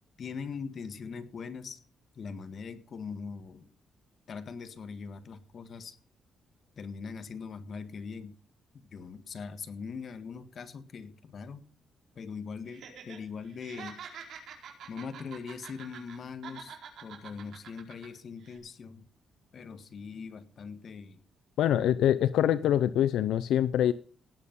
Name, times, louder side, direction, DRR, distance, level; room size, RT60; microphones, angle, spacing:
voice 1, 0.2-1.8 2.2-3.7 4.3-6.0 6.8-8.3 8.7-11.7 12.2-14.0 14.9-19.0 19.5-21.2, left 5 dB, 45° left, 11 dB, 1.8 m, -41 dB
Laughter, 12.7-13.2 13.5-16.2 16.4-18.1 18.4-18.6, right 7 dB, 70° right, 4.5 m, -46 dB
voice 2, 21.6-23.9, left 11 dB, 85° left, 15 dB, 0.7 m, -24 dB
18.0 x 8.7 x 5.4 m, 0.41 s
cardioid pair, 130°, 0 cm